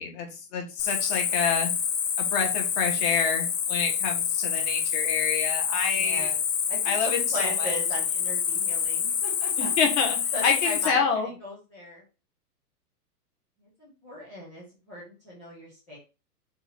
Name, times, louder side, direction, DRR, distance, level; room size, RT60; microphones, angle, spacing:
voice 1, 0.0-1.7 2.2-6.3 6.8-7.7 9.6-11.3, left 6 dB, 25° left, 2 dB, 1.5 m, -28 dB
Cricket, 0.8-10.9, left 8 dB, 50° left, 1.3 m, -27 dB
voice 2, 5.9-9.7 10.3-12.0 13.8-16.0, equal, 5° left, -8 dB, 0.4 m, -38 dB
7.1 x 2.8 x 5.7 m, 0.31 s
hypercardioid pair, 160°, 47 cm